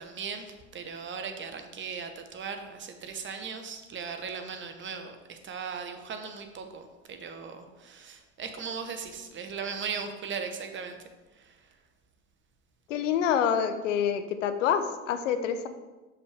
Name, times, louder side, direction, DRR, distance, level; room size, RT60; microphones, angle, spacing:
voice 1, 0.0-11.0 11.4-11.6, right 6 dB, 30° right, 6 dB, 1.0 m, -38 dB
voice 2, 12.9-15.7, left 8 dB, 85° left, 9 dB, 0.7 m, -27 dB
6.5 x 5.8 x 3.4 m, 1.1 s
hypercardioid pair, 90°, 37 cm